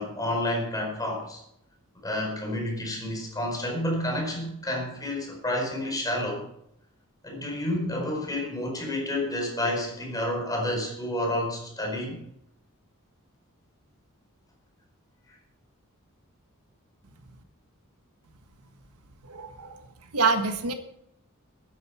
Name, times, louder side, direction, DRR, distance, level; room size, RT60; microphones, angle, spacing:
voice 1, 0.0-1.4 2.0-6.4 7.2-12.2, left 1 dB, 15° left, 0 dB, 4.8 m, -30 dB
voice 2, 19.2-19.9 20.1-20.7, right 4 dB, 90° right, 7 dB, 1.5 m, -26 dB
13.0 x 10.5 x 5.8 m, 0.75 s
head